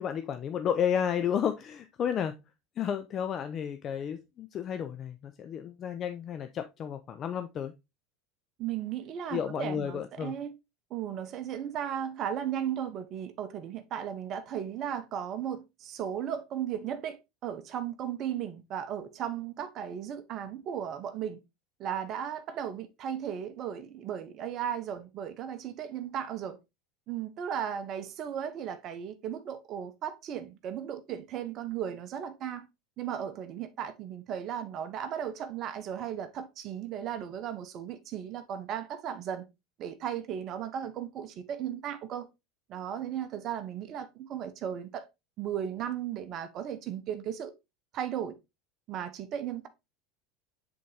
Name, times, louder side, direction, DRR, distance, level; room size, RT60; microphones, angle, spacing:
voice 1, 0.0-2.4 2.8-7.7 9.3-10.3, left 8 dB, 40° left, 0.6 m, -32 dB
voice 2, 8.6-10.5 10.9-21.4 21.8-26.6 27.1-32.7 33.0-39.4 39.8-42.3 42.7-45.1 45.4-47.5 47.9-48.3 48.9-49.7, right 9 dB, 50° right, 0.9 m, -36 dB
7.6 x 3.9 x 3.4 m
hypercardioid pair, 90°, 0 cm